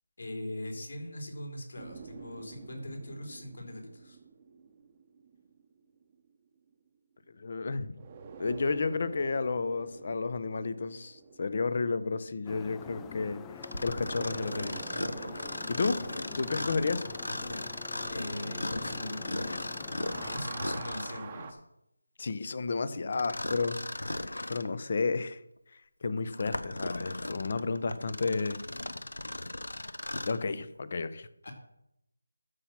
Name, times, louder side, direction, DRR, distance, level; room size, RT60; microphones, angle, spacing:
voice 1, 0.2-4.2 18.1-19.7 20.3-21.6 22.9-23.1 31.4-31.5, left 1 dB, 60° left, 2 dB, 3.8 m, -41 dB
sound 1, 1.8-6.3 8.0-13.4 13.9-19.5 19.8-21.5, right 5 dB, 20° right, 0.9 m, -48 dB
voice 2, 7.4-7.9 8.4-15.0 15.7-16.1 16.4-17.0 22.2-25.4 25.7-28.6 30.3-31.3, left 4 dB, 40° left, 14 dB, 0.8 m, -32 dB
sound 2, 12.5-20.4, left 7 dB, 10° left, 0.4 m, -46 dB
Mechanisms, 13.6-21.3 23.1-24.7 25.3-25.4 26.1-30.5, left 1 dB, 85° left, 0.9 m, -37 dB
13.0 x 5.9 x 5.9 m, 0.80 s
figure-of-eight pair, 165°, 0 cm